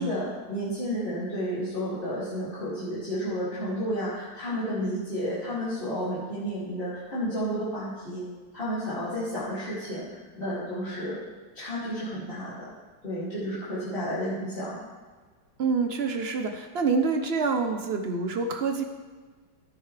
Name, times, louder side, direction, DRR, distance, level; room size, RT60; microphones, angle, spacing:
voice 1, 0.0-8.2 8.5-11.2 11.5-12.7 13.0-14.8, equal, 30° left, -12 dB, 2.9 m, -31 dB
voice 2, 15.6-18.8, right 4 dB, 70° right, 6 dB, 0.6 m, -27 dB
14.5 x 9.2 x 3.4 m, 1.4 s
omnidirectional pair, 2.0 m